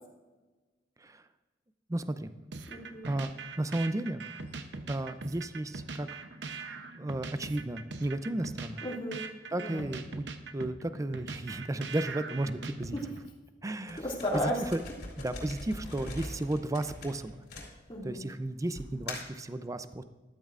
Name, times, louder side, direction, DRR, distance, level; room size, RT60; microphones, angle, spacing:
voice 1, 1.9-2.3 3.0-4.2 4.9-6.1 6.9-8.8 9.5-10.3 10.5-13.0 13.6-14.0 14.7-14.8 15.2-17.4 18.0-20.0, right 1 dB, 20° right, 11 dB, 0.5 m, -34 dB
sound 1, 2.5-13.3, right 4 dB, 70° right, 0.8 m, -42 dB
voice 2, 2.7-3.1 8.8-9.2 9.5-9.8 12.9-13.0 14.0-14.6 17.9-18.2, equal, 30° left, -3 dB, 2.2 m, -34 dB
sound 2, 13.9-18.2 18.7-19.4, left 2 dB, 65° left, 3.1 m, -42 dB
13.5 x 12.5 x 2.5 m, 1.2 s
head